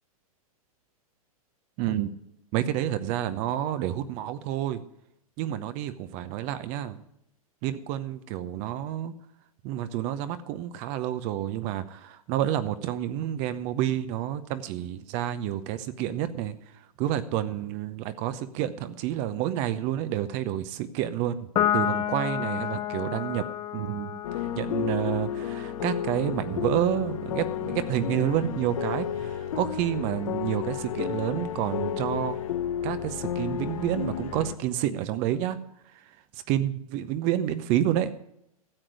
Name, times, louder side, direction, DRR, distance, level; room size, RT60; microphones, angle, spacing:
voice 1, 1.8-2.1 2.5-4.8 5.4-7.0 7.6-9.1 9.6-16.5 17.0-21.5 21.7-23.4 23.7-24.2 24.6-32.4 32.8-35.6 36.5-38.2, right 11 dB, 40° right, 12 dB, 0.8 m, -29 dB
Piano, 21.5-28.2, left 11 dB, 25° left, 0.6 m, -32 dB
sound 1, 24.2-34.5, left 9 dB, 60° left, 0.9 m, -32 dB
13.5 x 7.7 x 6.3 m, 0.78 s
hypercardioid pair, 115°, 19 cm